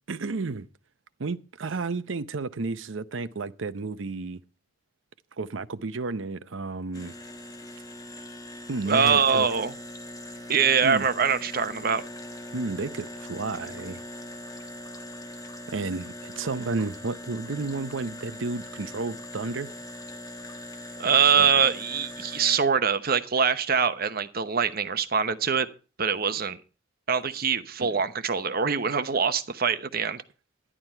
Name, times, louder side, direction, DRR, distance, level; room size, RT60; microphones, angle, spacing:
voice 1, 0.1-0.7 1.2-4.4 5.4-7.1 8.7-9.5 10.8-11.1 12.5-14.0 15.7-19.7 21.3-21.5 27.8-28.0, right 3 dB, 75° right, 0.7 m, -32 dB
sound 1, 6.9-22.6, left 1 dB, 20° left, 1.4 m, -41 dB
voice 2, 8.9-9.7 10.5-12.0 21.0-25.7 26.0-26.6 27.1-30.2, right 6 dB, 50° right, 1.0 m, -23 dB
11.0 x 11.0 x 4.4 m
head